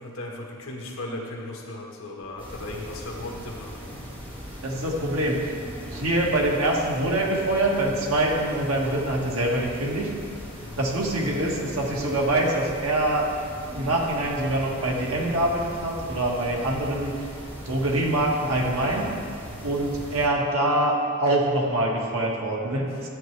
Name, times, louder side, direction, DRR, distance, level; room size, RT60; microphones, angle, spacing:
voice 1, 0.0-3.7 10.6-10.8 22.9-23.1, left 2 dB, 65° left, 0 dB, 1.3 m, -36 dB
sound 1, 2.4-20.3, equal, 25° right, 1.9 m, -39 dB
voice 2, 4.6-5.5 5.9-10.1 10.8-13.3 13.7-17.3 17.6-19.1 19.6-23.1, right 1 dB, 70° right, -2 dB, 1.6 m, -24 dB
13.0 x 8.8 x 3.3 m, 2.2 s
head